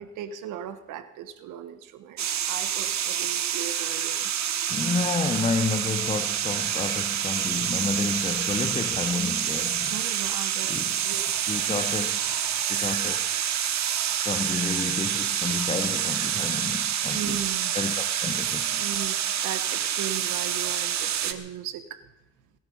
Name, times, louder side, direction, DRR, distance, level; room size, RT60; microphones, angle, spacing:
voice 1, 0.0-4.3 9.9-11.2 12.5-12.6 17.1-17.7 18.8-22.0, right 10 dB, 90° right, 1.3 m, -37 dB
sound 1, 2.2-21.3, right 10 dB, 65° right, 1.2 m, -27 dB
voice 2, 4.7-10.0 10.7-11.0 11.4-12.2 12.6-13.3 14.2-17.4 17.7-18.8, left 3 dB, 20° left, 0.9 m, -30 dB
19.5 x 12.5 x 5.5 m
cardioid pair, 90°, 30 cm